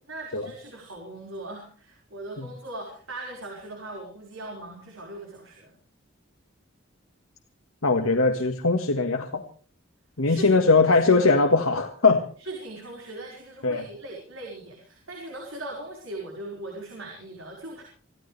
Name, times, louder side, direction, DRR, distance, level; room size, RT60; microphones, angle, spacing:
voice 1, 0.1-5.7 10.2-11.3 12.4-17.8, right 2 dB, 75° right, 0 dB, 4.9 m, -39 dB
voice 2, 7.8-9.4 10.2-12.2 13.6-13.9, left 3 dB, 85° left, 5 dB, 1.6 m, -21 dB
26.0 x 15.5 x 3.3 m, 0.42 s
head